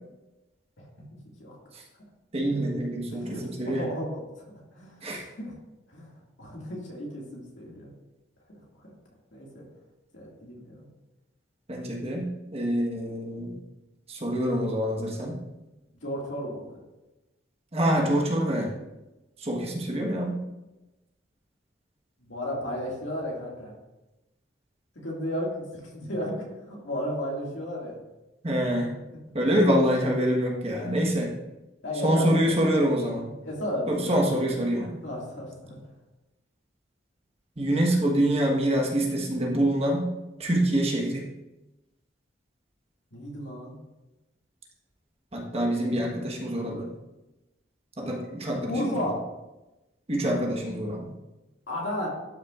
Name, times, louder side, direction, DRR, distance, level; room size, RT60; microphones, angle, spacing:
voice 1, 1.2-1.6 3.1-4.5 4.7-5.6 5.9-7.9 8.7-8.9 9.3-9.6 10.1-10.9 16.0-16.8 22.2-23.7 25.0-28.0 29.1-29.2 30.7-31.0 31.8-32.7 33.4-34.3 35.0-35.8 43.1-43.8 48.7-49.2 51.7-52.1, equal, 80° left, -2 dB, 2.1 m, -34 dB
voice 2, 2.3-3.9 5.0-5.2 11.7-13.5 14.1-15.4 17.7-18.7 19.4-20.4 28.4-28.9 29.3-31.3 32.0-33.3 33.9-35.0 37.6-40.1 40.4-41.3 45.3-46.9 48.0-49.0 50.1-51.1, right 1 dB, 30° right, -1 dB, 1.2 m, -26 dB
12.0 x 5.9 x 2.4 m, 1.0 s
head